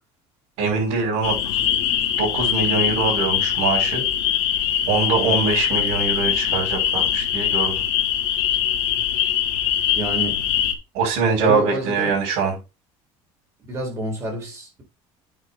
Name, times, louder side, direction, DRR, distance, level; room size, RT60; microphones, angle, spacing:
voice 1, 0.6-1.6 2.2-4.0 4.9-7.7 10.9-12.6, right 4 dB, 80° right, 6.1 m, -23 dB
sound 1, 1.2-10.7, left 10 dB, 80° left, 2.1 m, -22 dB
voice 2, 5.2-5.5 10.0-10.4 11.4-12.1 13.7-14.8, right 2 dB, 25° right, 4.2 m, -29 dB
9.1 x 6.0 x 3.7 m
cardioid pair, 180°, 11 cm